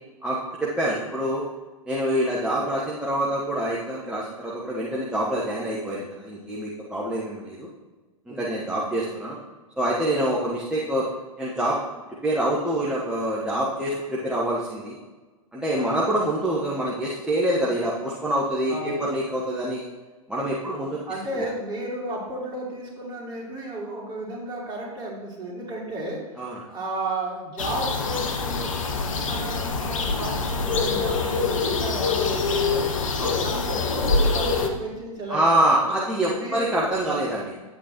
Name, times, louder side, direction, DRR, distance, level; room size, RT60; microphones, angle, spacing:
voice 1, 0.2-1.4 1.9-7.7 8.3-9.4 9.8-11.1 11.4-11.8 12.2-15.0 15.5-19.9 20.3-21.0 21.3-21.5 26.4-26.6 33.2-33.4 35.3-37.5, right 1 dB, 5° right, -6 dB, 1.1 m, -26 dB
voice 2, 18.7-19.2 20.6-26.2 26.6-28.7 29.2-32.9 33.4-35.4 36.3-36.7, right 1 dB, 25° right, -4 dB, 3.0 m, -33 dB
sound 1, 27.6-34.7, left 4 dB, 60° left, 1.0 m, -25 dB
10.5 x 8.1 x 3.0 m, 1.3 s
figure-of-eight pair, 105°, 19 cm